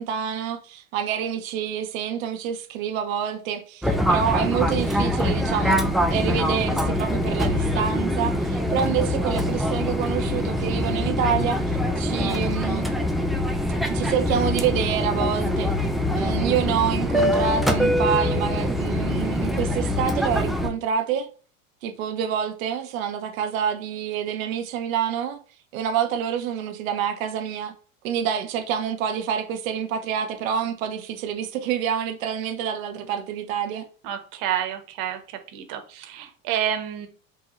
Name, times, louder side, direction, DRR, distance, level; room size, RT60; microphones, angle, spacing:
voice 1, 0.0-5.8 6.1-12.9 13.9-15.7 16.1-21.3 21.8-25.4 25.7-27.7 28.0-33.9, right 8 dB, 80° right, 0.7 m, -27 dB
Fixed-wing aircraft airplane, 3.8-20.7, left 1 dB, ahead, 0.3 m, -24 dB
voice 2, 34.1-35.2 35.5-37.1, right 10 dB, 60° right, 1.0 m, -29 dB
3.7 x 2.8 x 3.0 m
hypercardioid pair, 90°, 40 cm